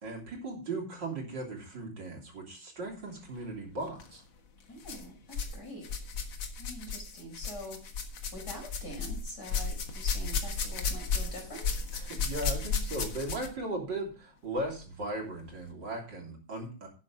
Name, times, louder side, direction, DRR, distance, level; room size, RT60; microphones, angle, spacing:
voice 1, 0.0-4.2 12.0-16.9, right 2 dB, 60° right, 0 dB, 3.8 m, -37 dB
sound 1, 3.9-4.1 4.8-5.6 5.8-13.6 14.6-14.7 15.5-15.6, left 5 dB, 70° left, 2.3 m, -34 dB
voice 2, 4.7-5.9 6.6-7.8 8.3-11.7, left 1 dB, 55° left, 1 dB, 5.4 m, -44 dB
12.0 x 9.6 x 3.8 m, 0.35 s
omnidirectional pair, 2.2 m